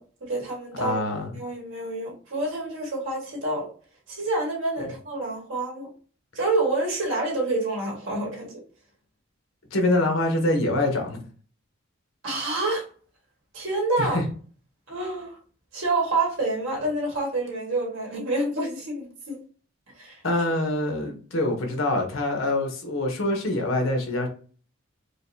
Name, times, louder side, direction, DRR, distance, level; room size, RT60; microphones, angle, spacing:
voice 1, 0.0-1.0 1.3-3.7 4.1-5.9 6.3-8.6 12.2-12.9 13.5-14.2 14.9-15.4 15.7-19.4 19.9-20.2, right 2 dB, 70° right, 1.7 m, -28 dB
voice 2, 0.8-1.4 4.8-4.9 9.7-11.2 14.0-14.2 20.2-24.3, left 1 dB, 75° left, 1.0 m, -25 dB
5.0 x 2.3 x 2.7 m
head